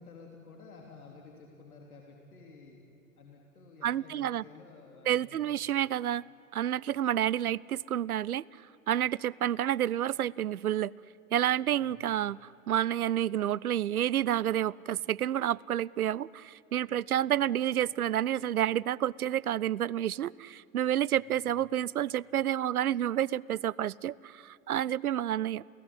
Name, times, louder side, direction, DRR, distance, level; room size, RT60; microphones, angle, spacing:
voice 1, 0.0-2.8 3.2-5.6 11.6-12.0 21.1-21.3, left 4 dB, 80° left, 0 dB, 3.4 m, -52 dB
voice 2, 3.8-4.4 5.1-6.2 6.5-8.4 8.9-10.9 11.3-25.6, right 11 dB, 85° right, 25 dB, 0.6 m, -29 dB
29.0 x 17.5 x 10.0 m, 2.6 s
hypercardioid pair, 105°, 43 cm